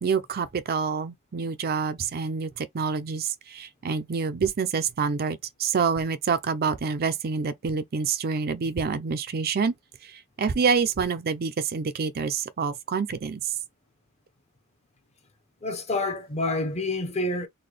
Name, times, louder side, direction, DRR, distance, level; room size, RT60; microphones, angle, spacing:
voice 1, 0.0-9.7 10.4-13.4, right 5 dB, 45° right, 0.5 m, -27 dB
voice 2, 15.6-17.5, left 2 dB, 30° left, 0.7 m, -28 dB
3.9 x 2.2 x 3.3 m
head